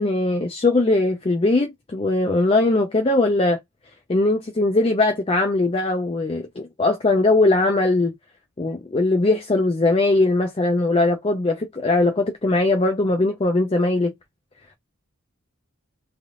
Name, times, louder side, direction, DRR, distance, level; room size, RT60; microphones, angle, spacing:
voice 1, 0.0-3.6 4.1-8.1 8.6-14.1, left 2 dB, 25° left, 0.4 m, -20 dB
3.3 x 2.4 x 2.4 m
head